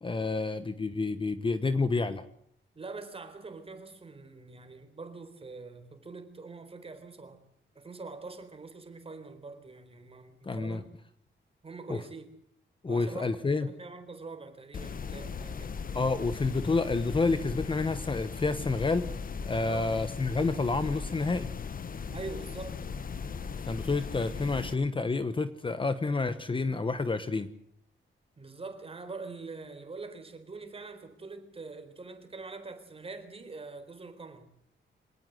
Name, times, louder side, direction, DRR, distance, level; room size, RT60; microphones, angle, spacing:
voice 1, 0.0-2.2 10.4-10.8 11.9-12.0 12.8-13.7 15.9-19.0 19.5-21.5 23.7-27.5, left 3 dB, 25° left, 12 dB, 1.1 m, -29 dB
voice 2, 2.8-7.4 7.7-10.8 11.6-12.3 12.9-13.3 13.6-15.7 19.6-19.9 22.1-22.8 28.4-34.5, right 3 dB, 30° right, 8 dB, 4.2 m, -44 dB
sound 1, 14.7-24.7, left 5 dB, 45° left, 1.2 m, -38 dB
25.5 x 19.0 x 7.8 m, 0.69 s
wide cardioid pair, 170°, 20 cm